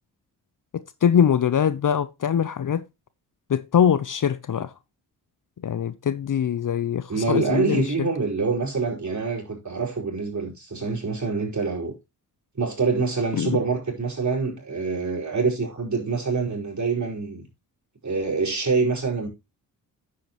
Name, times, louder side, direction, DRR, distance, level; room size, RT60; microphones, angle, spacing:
voice 1, 0.7-2.8 3.5-4.7 5.6-8.1 13.3-13.6, left 8 dB, 45° left, 0.7 m, -23 dB
voice 2, 7.1-11.9 12.6-17.4 18.0-19.3, right 4 dB, 40° right, 5.2 m, -25 dB
9.7 x 8.6 x 3.0 m
supercardioid pair, 45°, 44 cm